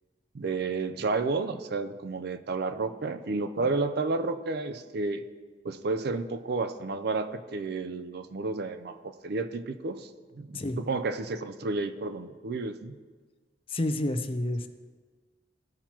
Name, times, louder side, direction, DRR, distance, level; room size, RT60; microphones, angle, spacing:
voice 1, 0.3-5.2 5.6-10.1 10.4-13.0, right 3 dB, 60° right, 10 dB, 0.5 m, -31 dB
voice 2, 13.7-14.7, left 1 dB, 30° left, 8 dB, 0.6 m, -29 dB
15.5 x 5.7 x 3.0 m, 1.4 s
head